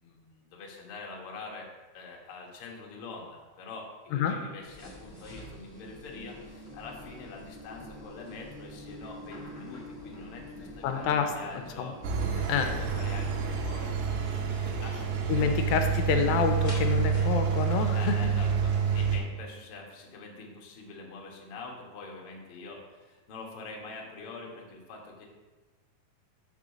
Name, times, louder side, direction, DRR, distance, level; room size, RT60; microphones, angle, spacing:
voice 1, 0.0-11.9 12.3-15.5 17.9-25.3, left 3 dB, 60° left, -1 dB, 1.5 m, -45 dB
sound 1, 4.6-18.5, left 1 dB, 35° left, 0.9 m, -46 dB
voice 2, 10.8-11.3 11.8-11.9 12.5-12.7 15.3-18.2, left 6 dB, 90° left, 6 dB, 2.4 m, -27 dB
Engine, 12.0-19.2, right 6 dB, 75° right, 2.4 m, -28 dB
5.5 x 4.9 x 6.5 m, 1.3 s
omnidirectional pair, 4.1 m